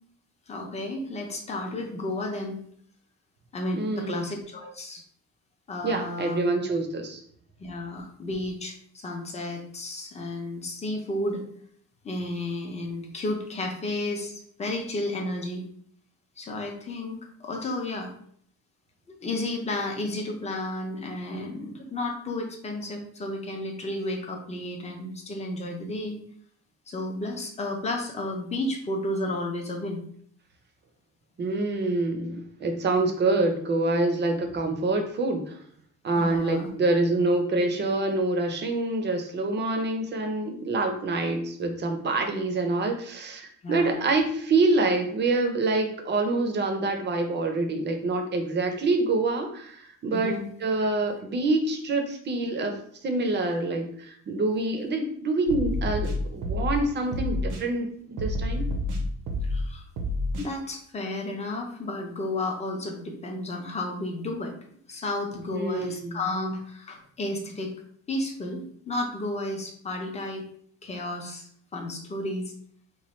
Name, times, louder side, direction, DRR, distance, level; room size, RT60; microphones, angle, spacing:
voice 1, 0.5-2.6 3.5-5.0 5.7-6.4 7.6-11.4 12.0-15.6 16.4-18.1 19.2-26.2 26.9-30.0 36.1-36.7 43.6-44.0 50.1-50.4 59.4-59.8 60.4-64.5 64.9-67.7 68.1-70.4 70.8-72.5, left 1 dB, 20° left, 1 dB, 0.6 m, -32 dB
voice 2, 3.7-4.3 5.8-7.2 31.4-35.6 36.0-52.7 53.0-58.7 65.5-66.2, right 2 dB, 35° right, 5 dB, 0.6 m, -26 dB
sound 1, 55.5-56.8 57.1-57.6 58.2-59.6 60.0-60.5, left 1 dB, 80° right, 0.7 m, -28 dB
3.1 x 2.2 x 4.2 m, 0.62 s
cardioid pair, 165°, 32 cm